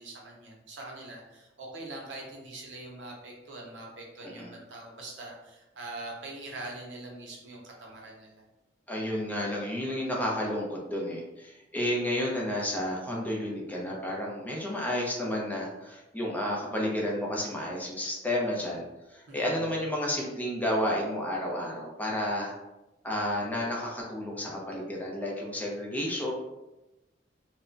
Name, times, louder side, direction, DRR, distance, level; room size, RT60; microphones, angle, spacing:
voice 1, 0.0-8.4 19.3-19.8, right 2 dB, 70° right, -1 dB, 0.7 m, -43 dB
voice 2, 4.2-4.5 8.9-18.8 19.1-22.5 23.0-26.3, left 1 dB, 10° left, -3 dB, 0.5 m, -31 dB
2.1 x 2.1 x 3.7 m, 1.0 s
head